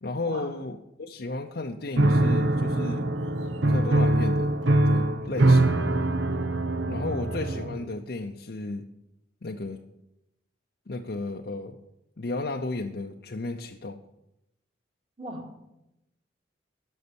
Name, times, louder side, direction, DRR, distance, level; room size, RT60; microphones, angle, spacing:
voice 1, 0.0-3.1 3.7-4.5 4.9-5.8 6.9-8.9 9.4-9.8 10.9-11.8 12.2-14.0, left 2 dB, 55° left, 3 dB, 0.6 m, -33 dB
Piano, 2.0-7.9, right 2 dB, 75° right, 0.9 m, -23 dB
voice 2, 15.2-15.6, equal, 30° right, 0 dB, 2.3 m, -39 dB
13.5 x 6.4 x 7.0 m, 0.88 s
head